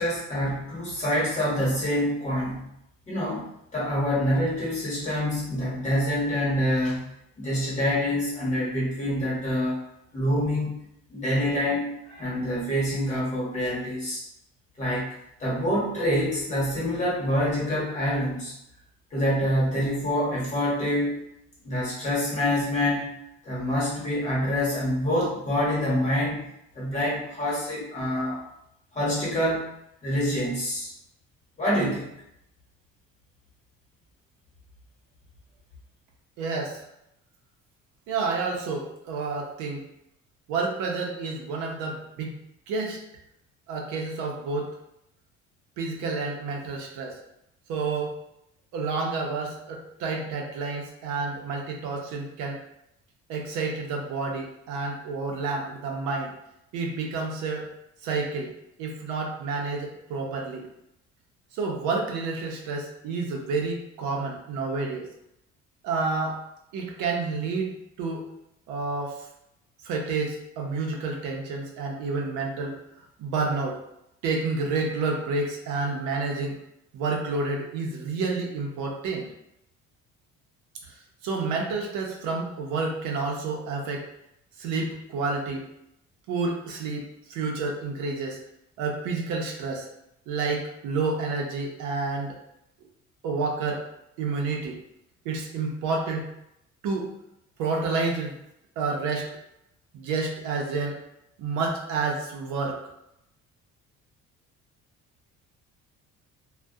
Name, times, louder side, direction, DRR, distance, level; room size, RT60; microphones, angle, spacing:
voice 1, 0.0-2.7 3.1-3.4 3.7-7.0 7.4-9.8 10.1-10.8 11.1-14.2 14.8-15.1 15.4-18.5 19.1-21.2 21.6-23.1 23.4-26.4 26.7-28.4 28.9-29.7 30.0-30.9 31.6-32.1, equal, 25° left, -7 dB, 1.0 m, -26 dB
voice 2, 36.4-36.8 38.1-39.9 40.5-42.3 42.7-43.0 43.7-44.7 45.8-47.2 47.7-48.1 48.7-52.6 53.3-56.3 56.7-57.7 58.0-58.5 58.8-60.7 61.5-65.0 65.8-66.4 66.7-68.3 68.7-69.2 69.8-72.8 73.2-73.8 74.2-76.6 76.9-79.3 80.9-81.0 81.2-84.0 84.6-85.7 86.3-88.4 88.8-89.9 90.3-92.4 93.2-93.8 94.2-94.8 95.2-96.3 96.8-97.1 97.6-98.4 98.8-99.3 99.9-101.0 101.4-102.8, right 4 dB, 85° right, 1 dB, 0.6 m, -29 dB
2.3 x 2.1 x 2.6 m, 0.81 s
cardioid pair, 150°, 29 cm